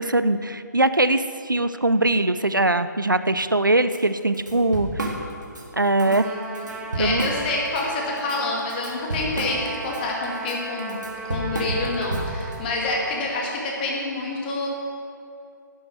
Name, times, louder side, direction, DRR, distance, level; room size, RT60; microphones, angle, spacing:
voice 1, 0.0-5.0 5.7-6.3 7.0-7.3, right 2 dB, 90° right, 12 dB, 0.5 m, -21 dB
Drum kit / Drum, 3.9-4.0 4.3-5.6 6.0-6.2 6.5-7.8 8.2-12.6, right 2 dB, 65° right, 1.9 m, -30 dB
Trumpet, 6.0-13.3, right 3 dB, 10° right, 0.6 m, -37 dB
voice 2, 6.1-6.6 6.9-11.0 11.2-14.7, left 2 dB, 30° left, -2 dB, 2.2 m, -27 dB
11.0 x 8.4 x 6.4 m, 2.4 s
figure-of-eight pair, 135°, 10 cm